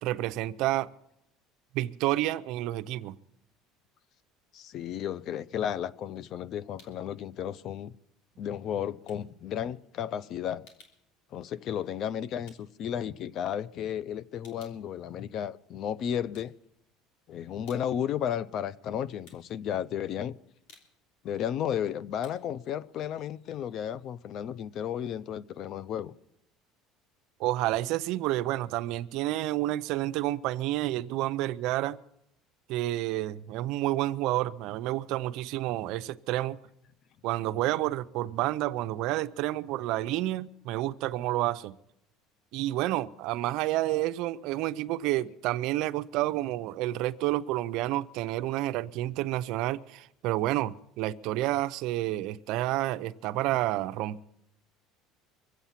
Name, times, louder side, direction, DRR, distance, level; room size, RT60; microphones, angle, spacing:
voice 1, 0.0-0.9 1.7-3.2 27.4-32.0 32.7-36.6 37.2-41.8 42.5-54.2, right 15 dB, 65° right, 0.6 m, -29 dB
voice 2, 4.5-7.9 8.4-10.7 11.3-16.5 17.3-20.4 21.2-26.1, left 9 dB, 50° left, 0.5 m, -33 dB
sound 1, 6.8-7.2 7.5-13.7 14.0-15.8 16.2-17.1 17.4-24.1, left 4 dB, 85° left, 2.9 m, -61 dB
24.0 x 8.2 x 5.8 m
cardioid pair, 125°, 0 cm